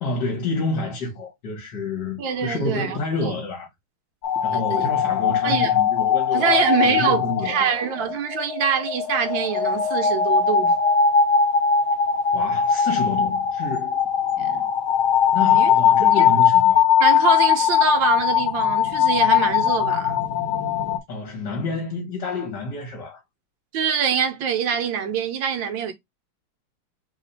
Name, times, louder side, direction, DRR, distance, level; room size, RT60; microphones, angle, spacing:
voice 1, 0.0-3.7 4.4-7.8 12.3-14.0 14.4-14.5 15.3-16.9 21.1-23.2, left 3 dB, 55° left, 1.9 m, -29 dB
voice 2, 2.2-3.3 4.5-4.9 5.2-5.7 6.3-10.7 14.4-14.7 15.4-15.8 16.1-16.3 17.0-20.2 23.7-25.9, right 7 dB, 70° right, 1.7 m, -25 dB
sound 1, 4.2-21.0, left 7 dB, 80° left, 1.6 m, -20 dB
4.1 x 2.7 x 3.9 m
omnidirectional pair, 2.3 m